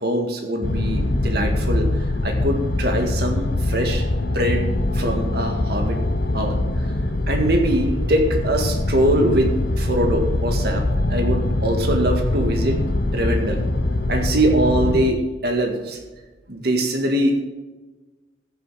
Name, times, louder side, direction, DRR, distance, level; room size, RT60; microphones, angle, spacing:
voice 1, 0.0-1.9 2.2-4.7 4.9-6.0 6.3-6.6 7.3-12.8 13.1-13.6 14.1-16.0 16.5-17.4, right 1 dB, 60° right, 3 dB, 1.9 m, -22 dB
sound 1, 0.6-15.1, left 1 dB, 60° left, 0.9 m, -23 dB
15.0 x 7.8 x 4.9 m, 1.2 s
head